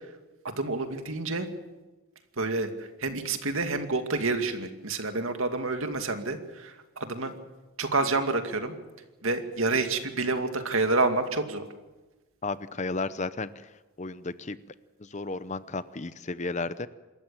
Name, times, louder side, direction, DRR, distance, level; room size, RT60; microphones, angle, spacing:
voice 1, 0.4-1.5 2.4-2.7 3.0-7.3 7.8-8.7 9.2-11.7, right 3 dB, 70° right, 7 dB, 2.3 m, -28 dB
voice 2, 12.4-13.7 14.0-14.6 15.0-16.9, left 3 dB, 30° left, 14 dB, 0.7 m, -33 dB
27.0 x 14.0 x 8.8 m, 1.2 s
head